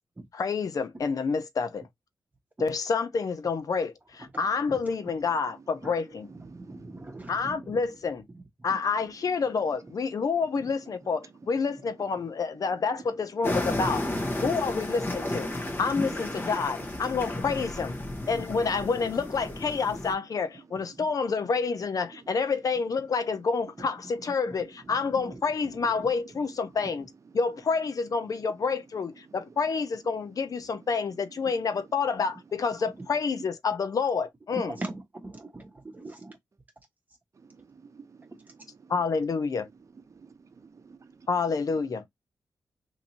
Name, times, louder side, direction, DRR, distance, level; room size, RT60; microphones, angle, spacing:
voice 1, 0.3-1.8 2.6-6.3 7.3-8.2 8.6-14.1 14.4-15.5 15.8-18.0 18.3-27.1 27.3-34.7 38.9-39.7 41.3-42.0, left 5 dB, 60° left, 0.7 m, -28 dB
voice 2, 4.6-4.9 5.3-5.7 6.0-7.3 8.7-8.8 9.3-9.4 9.9-10.3 10.7-10.8 11.5-11.6 11.9-13.0 18.0-18.3 18.6-18.7 22.1-22.4 26.6-26.7 27.3-27.4 29.2-29.5 30.2-30.9 31.4-31.8 37.3-39.0 39.5-41.3, right 5 dB, 50° right, 0.7 m, -53 dB
voice 3, 6.3-7.8 8.3-8.7 14.4-14.5 15.2-15.3 16.0-17.0 21.0-21.1 23.8-23.9 24.8-25.4 25.7-26.1 34.5-36.4, right 2 dB, 25° right, 1.0 m, -42 dB
sound 1, 13.4-20.1, left 1 dB, 30° left, 1.1 m, -33 dB
2.9 x 2.8 x 4.0 m
cardioid pair, 75°, 7 cm